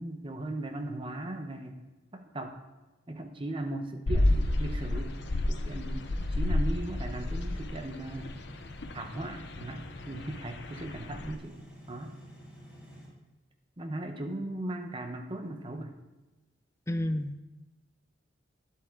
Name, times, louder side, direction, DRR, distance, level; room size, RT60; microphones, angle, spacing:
voice 1, 0.0-1.8 2.1-2.6 3.1-8.3 8.9-11.6 11.9-12.2 13.8-16.0, right 1 dB, 25° right, 6 dB, 0.8 m, -38 dB
sound 1, 4.1-11.3, left 1 dB, 60° left, 0.7 m, -31 dB
sound 2, 4.3-13.1, equal, 10° right, 2.7 m, -50 dB
voice 2, 16.9-17.4, left 1 dB, 15° left, 8 dB, 0.5 m, -30 dB
10.0 x 7.8 x 3.7 m, 1.1 s
head